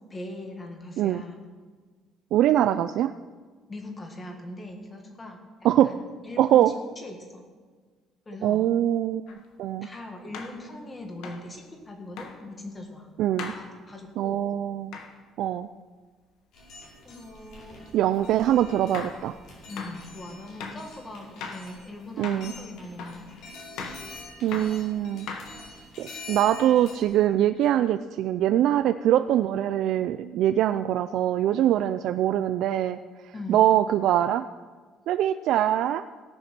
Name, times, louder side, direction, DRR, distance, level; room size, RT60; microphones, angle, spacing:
voice 1, 0.1-1.4 3.7-5.4 5.8-7.4 8.2-8.7 9.8-13.1 13.5-14.5 17.0-17.8 19.7-23.3 33.3-33.7, left 2 dB, 15° left, 2 dB, 1.7 m, -40 dB
voice 2, 2.3-3.1 5.6-5.9 6.4-6.7 8.4-9.2 9.6-9.9 13.2-13.5 14.2-15.0 15.4-15.7 17.9-19.3 22.2-22.5 24.4-25.3 26.0-33.0 33.5-34.4 35.1-36.0, right 12 dB, 60° right, 10 dB, 0.3 m, -23 dB
sound 1, 9.3-9.4 10.3-10.6 11.2-11.5 12.2-12.4 13.4-13.6 14.9-15.1 18.2-18.3 18.9-19.2 19.8-20.0 20.6-20.9 21.4-21.7 22.2-22.5 23.0-23.2 23.8-24.0 24.5-24.8 25.3-25.8, left 5 dB, 80° left, 1.6 m, -38 dB
sound 2, 16.5-27.1, left 2 dB, 60° left, 4.9 m, -46 dB
17.5 x 7.1 x 6.0 m, 1.5 s
cardioid pair, 165°, 0 cm